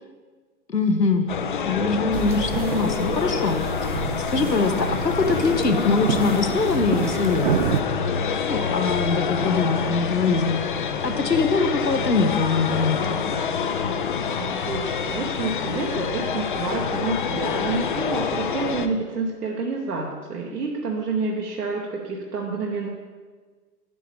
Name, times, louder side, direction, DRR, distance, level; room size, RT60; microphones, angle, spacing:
voice 1, 0.7-1.3 1.6-7.5 8.2-10.7 11.0-13.2, left 4 dB, 90° left, 7 dB, 1.0 m, -23 dB
sound 1, 1.3-18.9, left 6 dB, 35° left, 0.4 m, -27 dB
sound 2, 2.1-7.8, right 7 dB, 45° right, 0.5 m, -29 dB
voice 2, 14.4-22.9, right 4 dB, 70° right, -2 dB, 1.3 m, -28 dB
10.0 x 8.3 x 3.6 m, 1.5 s
figure-of-eight pair, 105°, 48 cm